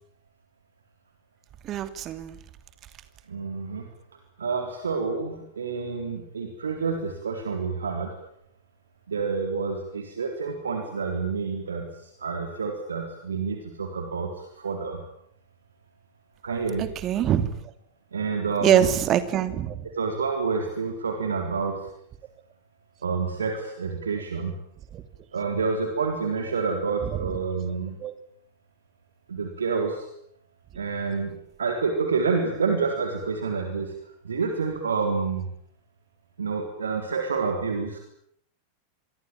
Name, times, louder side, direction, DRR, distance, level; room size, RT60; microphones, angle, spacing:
voice 1, 1.6-2.4 16.8-17.6 18.6-19.9 24.9-25.0 27.1-27.4 28.0-28.2, right 10 dB, 30° right, 12 dB, 2.8 m, -24 dB
voice 2, 3.3-3.9 4.4-8.1 9.1-11.9 12.2-15.0 16.4-16.9 18.1-18.8 19.9-21.9 23.0-24.5 25.3-28.0 29.3-30.1 30.8-33.9 34.2-35.5 36.4-38.0, right 5 dB, 70° right, 4 dB, 3.8 m, -28 dB
27.0 x 23.0 x 9.1 m, 0.69 s
figure-of-eight pair, 90°, 0 cm